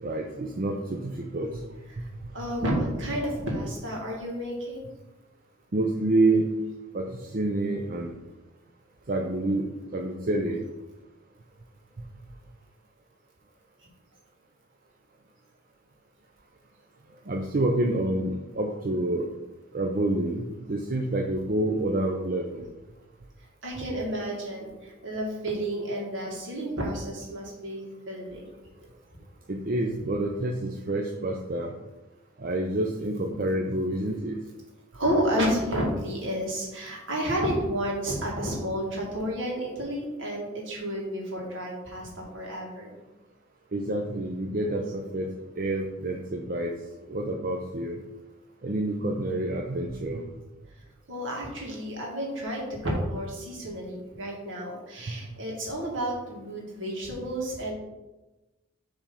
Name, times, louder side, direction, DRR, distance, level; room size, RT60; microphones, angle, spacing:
voice 1, 0.0-1.6 2.0-2.1 5.7-6.5 6.9-7.0 7.3-8.1 9.1-9.7 9.9-10.6 17.3-19.2 19.7-22.7 29.5-31.7 32.4-34.4 43.7-45.3 45.6-46.7 47.1-48.0 48.6-50.2 55.1-55.2, right 2 dB, 45° right, 1 dB, 0.6 m, -28 dB
voice 2, 2.3-4.9 23.6-28.5 34.9-42.9 51.1-57.7, equal, 65° right, -2 dB, 2.1 m, -31 dB
7.2 x 3.5 x 5.5 m, 1.1 s
head